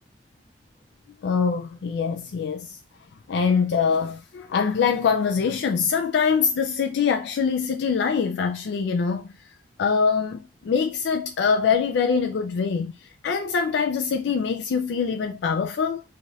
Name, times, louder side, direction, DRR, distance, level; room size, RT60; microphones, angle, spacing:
voice 1, 1.2-2.8 3.3-9.3 9.8-12.9 13.2-16.0, left 6 dB, 80° left, 0.3 m, -24 dB
3.1 x 2.4 x 2.7 m
head